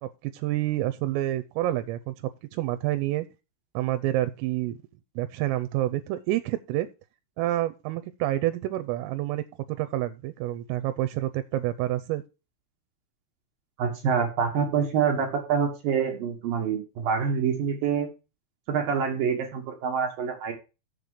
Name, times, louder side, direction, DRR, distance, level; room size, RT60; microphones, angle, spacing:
voice 1, 0.0-2.1 2.5-3.3 3.7-4.8 5.2-6.9 7.4-12.2, right 14 dB, 85° right, 3.3 m, -28 dB
voice 2, 13.8-18.1 18.7-20.5, right 6 dB, 65° right, 2.5 m, -26 dB
7.5 x 6.8 x 6.4 m
omnidirectional pair, 5.9 m